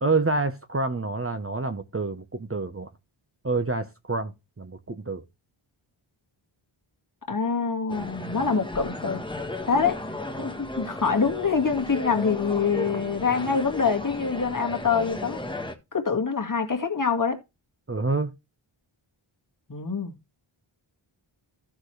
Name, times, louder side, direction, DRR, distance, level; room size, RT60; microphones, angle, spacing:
voice 1, 0.0-2.9 3.4-5.2 17.9-18.3, right 3 dB, 30° right, 0.9 m, -27 dB
voice 2, 7.3-9.2 9.6-10.0 10.4-15.4 15.9-17.4 19.7-20.1, left 5 dB, 40° left, 2.0 m, -25 dB
sound 1, 7.9-15.8, left 1 dB, 10° left, 1.2 m, -35 dB
14.5 x 6.1 x 3.2 m
wide cardioid pair, 95°, 49 cm